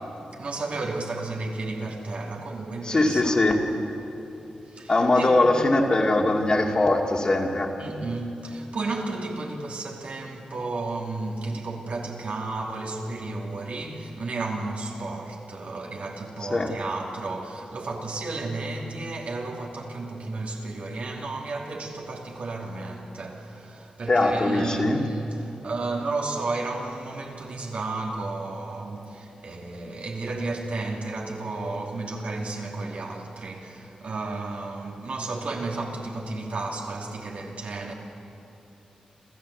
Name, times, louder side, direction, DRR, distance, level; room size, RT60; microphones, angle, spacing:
voice 1, 0.3-3.4 4.7-5.6 7.8-37.9, right 3 dB, 65° right, 2.9 m, -33 dB
voice 2, 2.8-3.6 4.9-7.7 16.4-16.7 24.1-25.0, left 2 dB, 35° left, 2.3 m, -21 dB
27.5 x 14.5 x 8.3 m
wide cardioid pair, 100°, 2 cm